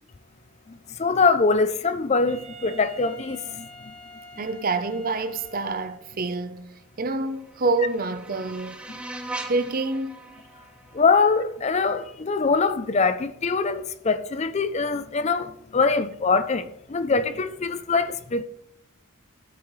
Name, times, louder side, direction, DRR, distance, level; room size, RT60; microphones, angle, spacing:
voice 1, 1.0-3.7 10.9-18.4, left 4 dB, 30° left, 0.4 m, -23 dB
Wind instrument woodwind instrument, 2.3-6.2, equal, 70° right, 1.9 m, -46 dB
voice 2, 4.4-6.7 7.0-8.8 9.4-10.3, right 3 dB, 40° right, 0.7 m, -27 dB
sound 1, 7.1-12.1, right 2 dB, 5° right, 0.9 m, -40 dB
13.5 x 8.4 x 3.2 m
head